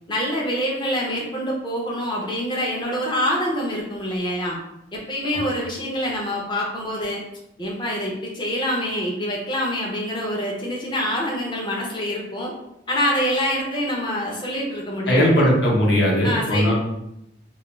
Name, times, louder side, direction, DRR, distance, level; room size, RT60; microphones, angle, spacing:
voice 1, 0.1-4.6 4.9-7.2 7.6-12.5 12.9-15.4 16.2-16.7, equal, 25° left, -2 dB, 0.5 m, -26 dB
voice 2, 15.1-16.8, equal, 65° left, -3 dB, 0.8 m, -18 dB
2.3 x 2.2 x 3.0 m, 0.84 s
head